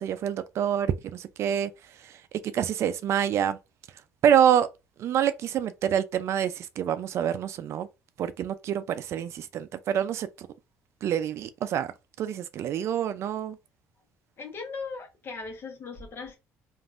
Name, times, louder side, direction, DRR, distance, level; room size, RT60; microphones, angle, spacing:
voice 1, 0.0-1.7 2.0-2.2 2.5-3.6 4.2-4.7 5.0-7.9 8.2-10.5 11.0-13.6, right 9 dB, 60° right, 0.4 m, -26 dB
voice 2, 14.4-16.4, left 4 dB, 45° left, 1.1 m, -38 dB
3.3 x 2.5 x 2.4 m
cardioid pair, 95°, 5 cm